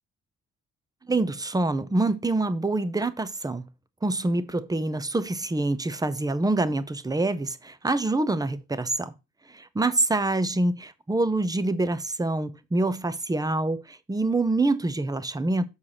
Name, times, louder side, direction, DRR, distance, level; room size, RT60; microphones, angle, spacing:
voice 1, 1.1-3.7 4.0-9.1 9.5-15.7, right 2 dB, 10° right, 0.9 m, -26 dB
7.4 x 4.7 x 6.3 m
cardioid pair, 90°, 30 cm